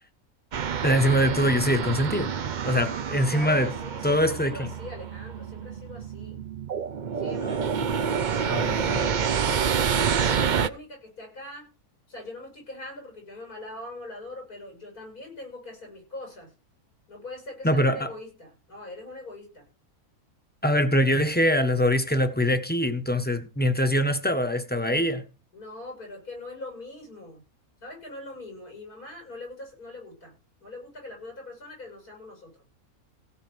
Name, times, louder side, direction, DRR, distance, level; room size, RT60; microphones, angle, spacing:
sound 1, 0.5-10.7, right 7 dB, 50° right, 0.5 m, -28 dB
voice 1, 0.8-2.3 2.6-3.7 4.0-4.7 7.4-7.7 8.5-8.8 17.6-18.1 20.6-25.2, equal, 5° left, 1.3 m, -23 dB
voice 2, 3.3-6.4 7.2-7.7 8.1-11.7 12.1-16.5 17.1-19.7 25.5-27.4 27.8-30.3 30.6-32.5, left 2 dB, 90° left, 8.5 m, -42 dB
17.0 x 5.7 x 6.5 m
omnidirectional pair, 1.5 m